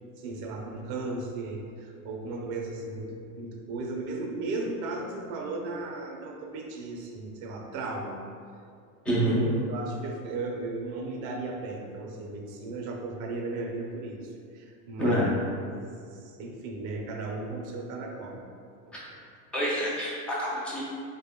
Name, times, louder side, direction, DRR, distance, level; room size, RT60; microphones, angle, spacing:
voice 1, 0.2-8.2 9.3-15.5 16.1-18.4 18.9-19.0, right 3 dB, 40° right, 1 dB, 0.6 m, -36 dB
voice 2, 9.1-9.5 15.0-15.3 18.9-19.0 19.5-20.8, equal, 5° left, -7 dB, 0.3 m, -27 dB
3.3 x 2.2 x 3.5 m, 2.3 s
hypercardioid pair, 110°, 46 cm